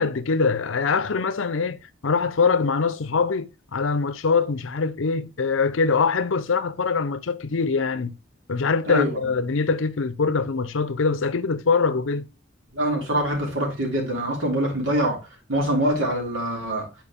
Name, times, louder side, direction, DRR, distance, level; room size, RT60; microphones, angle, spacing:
voice 1, 0.0-8.2 8.5-12.3, left 4 dB, 75° left, 0.6 m, -23 dB
voice 2, 8.9-9.2 12.7-15.2 15.5-16.9, right 1 dB, 75° right, 3.2 m, -24 dB
8.9 x 4.6 x 3.6 m
head